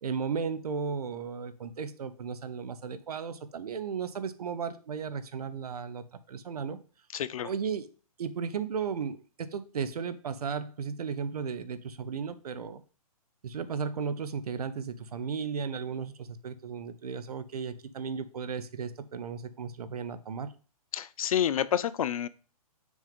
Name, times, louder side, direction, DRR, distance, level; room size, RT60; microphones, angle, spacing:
voice 1, 0.0-6.8 7.4-7.9 8.2-12.8 13.4-20.5, right 6 dB, 75° right, 12 dB, 0.9 m, -35 dB
voice 2, 7.1-7.5 20.9-22.3, left 10 dB, 65° left, 16 dB, 0.5 m, -29 dB
6.2 x 3.7 x 5.2 m, 0.37 s
hypercardioid pair, 150°, 20 cm